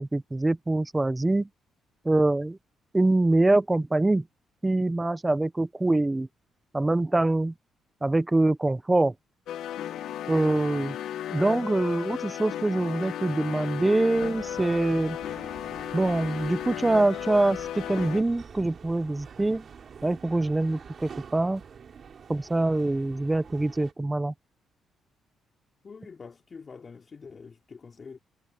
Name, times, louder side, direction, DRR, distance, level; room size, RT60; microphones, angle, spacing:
voice 1, 0.0-1.5 2.0-2.6 2.9-4.2 4.6-6.3 6.7-7.5 8.0-9.1 10.3-11.0 11.3-15.2 15.9-19.7 20.0-21.6 22.3-24.3, right 2 dB, 15° right, 1.0 m, -24 dB
sound 1, 9.5-18.2, left 11 dB, 80° left, 1.4 m, -35 dB
sound 2, 14.1-23.9, right 6 dB, 50° right, 5.6 m, -47 dB
voice 2, 25.8-28.2, left 5 dB, 40° left, 3.4 m, -45 dB
cardioid pair, 90°, 0 cm